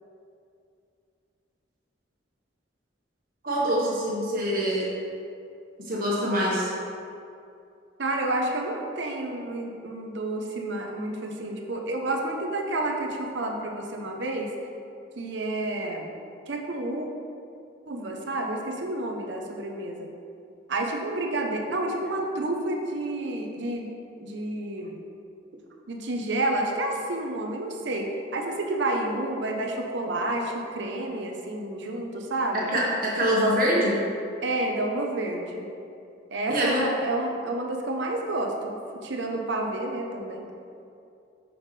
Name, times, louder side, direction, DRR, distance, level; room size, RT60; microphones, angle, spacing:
voice 1, 3.4-4.9 5.9-6.7 32.5-34.0 36.5-36.8, equal, 45° right, -5 dB, 1.3 m, -24 dB
voice 2, 8.0-14.5 15.2-16.1 16.5-17.1 17.9-20.1 20.7-23.9 24.2-25.0 25.9-32.7 34.4-35.7 36.3-40.5, right 2 dB, 70° right, 1 dB, 0.7 m, -30 dB
6.5 x 5.7 x 3.2 m, 2.5 s
head